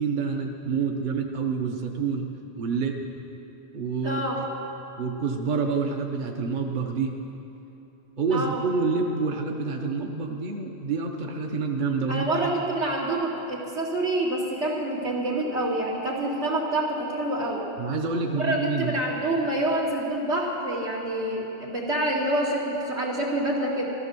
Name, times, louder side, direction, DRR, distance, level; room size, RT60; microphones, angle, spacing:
voice 1, 0.0-2.3 2.6-3.1 3.7-4.4 5.0-7.2 8.2-12.5 17.8-18.9, right 4 dB, 50° right, 2 dB, 1.0 m, -27 dB
voice 2, 4.0-4.4 8.3-8.6 12.1-17.6 18.4-23.9, right 1 dB, 85° right, -3 dB, 3.1 m, -27 dB
14.0 x 14.0 x 6.9 m, 2.9 s
omnidirectional pair, 1.1 m